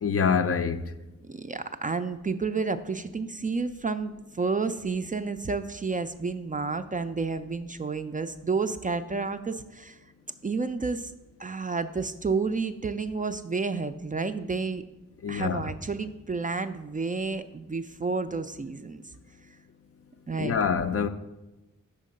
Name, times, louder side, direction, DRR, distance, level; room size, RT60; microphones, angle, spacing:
voice 1, 0.0-0.8 15.2-15.7 20.4-21.1, left 6 dB, 45° left, 0.4 m, -25 dB
voice 2, 1.2-10.0 10.4-11.1 11.4-14.8 15.3-19.0 20.3-20.5, right 4 dB, 25° right, 0.3 m, -30 dB
5.7 x 3.7 x 5.3 m
cardioid pair, 45°, 32 cm